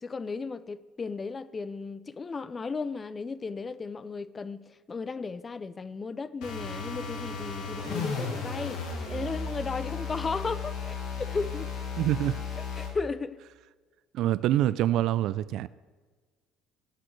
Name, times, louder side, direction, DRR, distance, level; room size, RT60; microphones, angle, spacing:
voice 1, 0.0-8.8 9.1-11.7 12.8-13.4, left 4 dB, 25° left, 0.4 m, -35 dB
sound 1, 6.4-13.0, left 5 dB, 75° left, 1.6 m, -35 dB
voice 2, 12.0-12.4 14.1-15.7, right 13 dB, 65° right, 0.3 m, -25 dB
16.0 x 6.3 x 3.2 m
cardioid pair, 125°, 0 cm